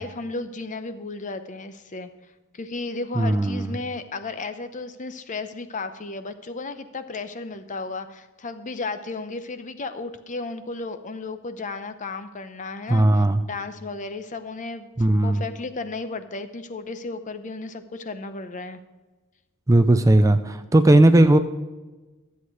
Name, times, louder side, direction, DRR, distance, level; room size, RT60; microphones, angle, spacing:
voice 1, 0.0-2.1 2.5-14.9 15.2-18.8, left 3 dB, 35° left, 10 dB, 0.7 m, -34 dB
voice 2, 3.2-3.8 12.9-13.4 15.0-15.4 19.7-21.4, right 1 dB, 15° right, 10 dB, 0.4 m, -17 dB
12.5 x 8.1 x 4.7 m, 1.2 s
head